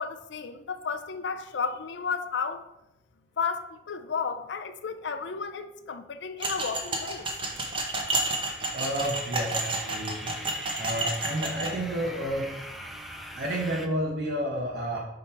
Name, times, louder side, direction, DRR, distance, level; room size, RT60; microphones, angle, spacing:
voice 1, 0.0-2.6 3.4-7.3, left 5 dB, 85° left, 0.5 m, -33 dB
sound 1, 6.4-11.7, right 2 dB, 30° right, 0.9 m, -31 dB
sound 2, 7.2-13.9, equal, ahead, 0.5 m, -43 dB
voice 2, 8.7-10.3 10.8-12.5 13.3-15.0, right 1 dB, 65° right, 1.1 m, -30 dB
5.9 x 5.2 x 4.4 m
head